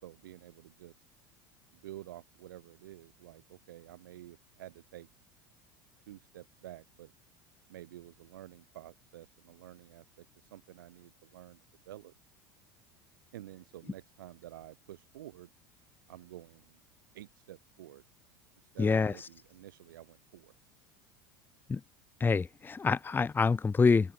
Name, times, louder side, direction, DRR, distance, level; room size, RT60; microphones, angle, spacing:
voice 1, 0.0-1.1 1.8-5.1 6.1-7.1 7.7-12.1 13.3-15.5 16.1-16.8 17.1-18.0 18.6-20.5, right 14 dB, 75° right, 4.1 m, -50 dB
voice 2, 18.8-19.1 21.7-21.8 22.2-24.1, left 4 dB, 20° left, 0.9 m, -26 dB
open air
hypercardioid pair, 75°, 11 cm